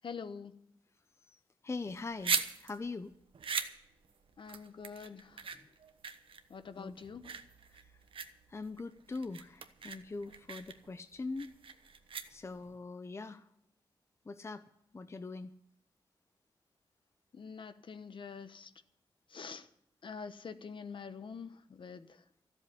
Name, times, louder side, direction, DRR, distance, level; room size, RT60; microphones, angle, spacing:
voice 1, 0.0-0.5 4.4-5.5 6.5-7.2 17.3-18.7 19.3-19.7 20.0-22.2, left 6 dB, 65° left, 11 dB, 1.1 m, -45 dB
voice 2, 1.3-3.1 5.5-5.7 6.8-7.0 7.7-8.0 8.5-11.5 12.3-13.5 14.2-14.6 14.9-15.5, left 3 dB, 30° left, 11 dB, 0.6 m, -42 dB
sound 1, 1.8-12.7, right 6 dB, 70° right, 1.1 m, -40 dB
14.0 x 7.8 x 10.0 m, 0.75 s
wide cardioid pair, 140°, 9 cm